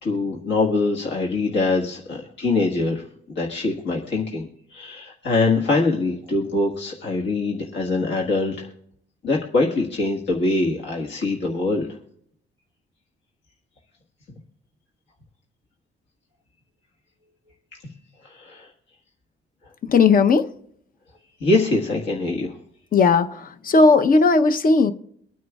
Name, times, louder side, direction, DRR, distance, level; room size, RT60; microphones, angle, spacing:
voice 1, 0.0-8.7 9.2-11.9 18.2-18.7 21.4-22.5, left 3 dB, 65° left, -1 dB, 1.7 m, -23 dB
voice 2, 19.9-20.4 22.9-23.3 23.6-24.9, left 4 dB, 45° left, 9 dB, 0.8 m, -15 dB
24.0 x 9.3 x 2.4 m, 0.68 s
cardioid pair, 90°, 20 cm